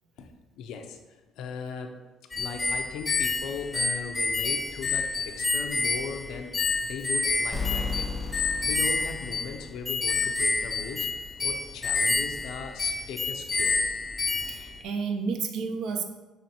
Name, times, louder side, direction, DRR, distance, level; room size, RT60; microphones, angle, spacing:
voice 1, 0.2-2.0 2.4-11.1 11.4-13.8, left 6 dB, 70° left, 5 dB, 0.5 m, -39 dB
sound 1, 2.3-14.8, left 3 dB, 20° left, 0.4 m, -28 dB
sound 2, 7.5-10.2, left 4 dB, 5° right, 0.8 m, -34 dB
voice 2, 14.4-16.0, right 5 dB, 60° right, 4 dB, 0.6 m, -31 dB
5.9 x 3.1 x 2.9 m, 1.2 s
cardioid pair, 150°, 0 cm